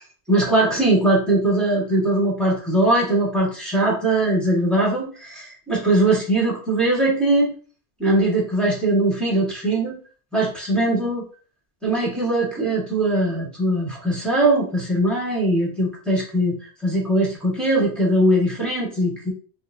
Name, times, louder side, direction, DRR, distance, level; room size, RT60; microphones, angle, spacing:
voice 1, 0.3-7.5 8.0-10.0 10.3-11.2 11.8-19.3, right 1 dB, ahead, -5 dB, 1.6 m, -20 dB
5.9 x 2.3 x 2.7 m, 0.40 s
omnidirectional pair, 1.0 m